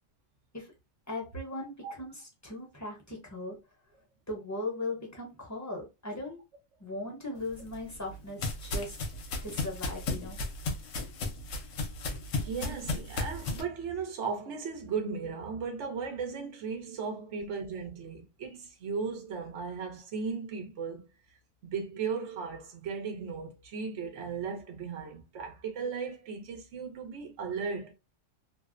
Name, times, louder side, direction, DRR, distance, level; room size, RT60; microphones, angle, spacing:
voice 1, 1.1-2.1 2.4-3.6 4.3-6.4 6.8-9.0 9.4-10.4, left 2 dB, 20° left, 0.6 m, -38 dB
sound 1, 7.5-13.6, left 3 dB, 75° left, 1.0 m, -35 dB
voice 2, 12.4-21.1 21.6-27.9, right 5 dB, 70° right, 1.0 m, -36 dB
2.5 x 2.0 x 2.4 m
omnidirectional pair, 1.3 m